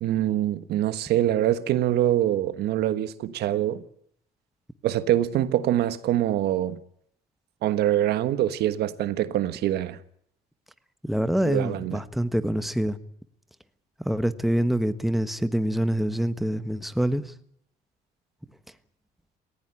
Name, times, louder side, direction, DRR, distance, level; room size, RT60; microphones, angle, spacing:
voice 1, 0.0-3.8 4.8-6.8 7.6-10.0 11.4-12.0, right 12 dB, 75° right, 1.3 m, -24 dB
voice 2, 11.0-13.0 14.0-17.3, equal, ahead, 1.3 m, -25 dB
18.5 x 15.5 x 9.9 m
cardioid pair, 110°, 17 cm